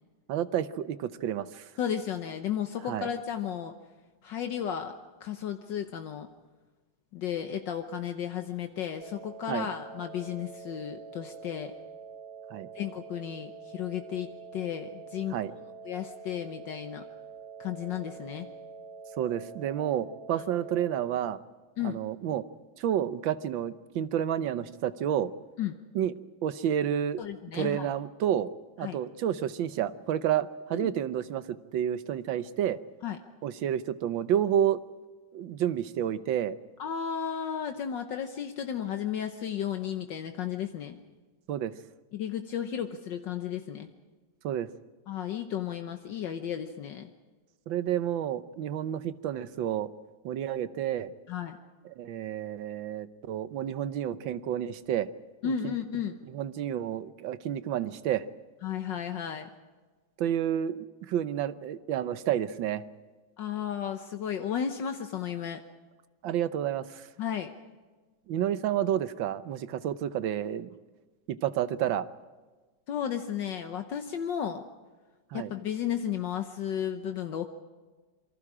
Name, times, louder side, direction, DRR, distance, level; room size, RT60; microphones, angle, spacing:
voice 1, 0.3-1.7 2.9-3.1 9.5-9.7 12.5-12.7 15.3-15.5 19.2-21.4 21.8-22.4 22.8-25.3 25.9-26.1 26.4-27.2 27.5-28.5 28.8-32.8 33.4-34.8 35.3-36.5 41.5-41.7 44.4-44.7 47.7-49.9 50.2-51.1 51.8-55.1 55.4-55.7 56.2-58.2 60.2-62.8 66.2-67.1 68.3-70.7 71.3-72.1 75.3-75.5, right 10 dB, 80° right, 13 dB, 1.6 m, -30 dB
voice 2, 1.8-3.7 4.2-4.9 5.2-6.3 7.1-11.7 12.7-15.4 15.8-17.0 17.6-18.5 21.8-22.0 25.6-25.8 27.2-27.9 28.8-29.0 30.7-30.9 33.0-33.2 36.8-41.0 42.1-43.9 45.1-47.1 51.3-51.6 55.4-56.2 58.6-59.5 63.4-65.6 67.2-67.5 72.9-74.6 75.3-77.5, left 9 dB, 70° left, 6 dB, 1.6 m, -33 dB
sound 1, 9.0-21.0, right 4 dB, 55° right, 2.0 m, -46 dB
27.0 x 24.0 x 4.9 m, 1.3 s
omnidirectional pair, 2.1 m